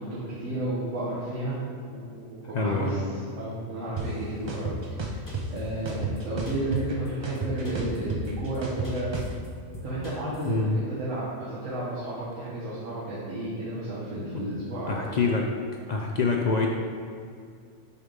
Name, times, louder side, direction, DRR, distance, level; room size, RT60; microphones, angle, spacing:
voice 1, 0.0-1.6 1.9-5.2 5.5-9.1 9.8-15.2, right 1 dB, 90° right, -9 dB, 1.5 m, -32 dB
voice 2, 2.5-2.9 10.5-10.8 14.3-14.4 14.9-15.5 15.9-16.7, left 4 dB, 75° left, 1 dB, 0.4 m, -25 dB
sound 1, 4.0-4.1 4.5-5.4 5.9-6.9 7.2-9.3, right 5 dB, 45° right, 0.3 m, -32 dB
sound 2, 5.3-6.2 6.5-6.8 7.0-7.1 7.3-7.4 7.6-8.0 8.2-8.6 8.8-9.5 9.7-10.5, equal, 15° left, 1.3 m, -41 dB
6.5 x 3.4 x 5.2 m, 2.3 s
omnidirectional pair, 1.3 m